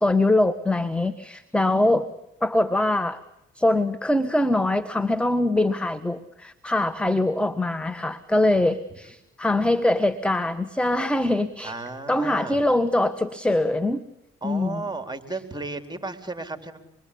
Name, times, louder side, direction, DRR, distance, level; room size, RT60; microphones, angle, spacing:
voice 1, 0.0-2.1 2.4-3.2 3.5-11.7 12.1-14.0 14.4-14.8, left 1 dB, 5° left, 11 dB, 1.5 m, -23 dB
voice 2, 11.6-12.6 14.4-16.8, right 3 dB, 15° right, 7 dB, 4.1 m, -34 dB
26.0 x 23.0 x 8.6 m, 0.83 s
supercardioid pair, 50°, 31 cm